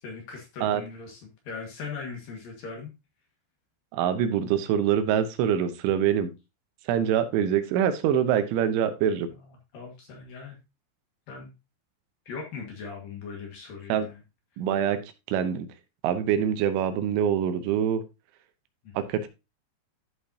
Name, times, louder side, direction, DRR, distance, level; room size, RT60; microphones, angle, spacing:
voice 1, 0.0-2.9 9.3-10.6 11.3-11.5 12.3-14.2 18.8-18.9, left 5 dB, 55° left, 1 dB, 3.0 m, -40 dB
voice 2, 3.9-6.3 6.9-9.3 13.9-14.1 14.6-15.0 15.3-15.7 16.0-18.0 19.0-19.3, right 9 dB, 85° right, 9 dB, 3.4 m, -24 dB
13.0 x 5.6 x 2.8 m, 0.26 s
omnidirectional pair, 5.4 m